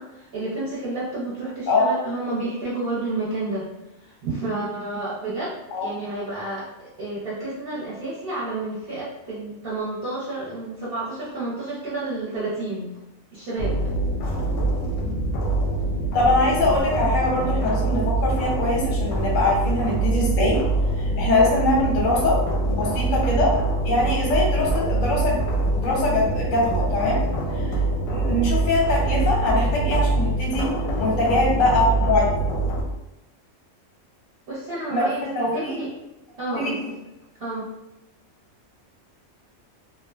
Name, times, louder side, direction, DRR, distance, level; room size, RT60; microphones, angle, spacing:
voice 1, 0.0-3.7 4.0-6.7 7.0-12.9 13.3-13.8 34.5-35.9 36.4-36.9 37.4-37.7, right 2 dB, 50° right, -9 dB, 0.8 m, -30 dB
sound 1, 13.6-32.8, right 2 dB, 90° left, 1.0 m, -24 dB
voice 2, 16.1-20.6 21.0-22.4 22.7-23.5 23.8-25.4 25.8-27.2 27.5-27.8 28.1-30.7 31.0-32.3 34.9-35.8 36.5-36.7, left 2 dB, 50° left, -2 dB, 0.7 m, -22 dB
2.9 x 2.2 x 2.3 m, 0.94 s
omnidirectional pair, 1.4 m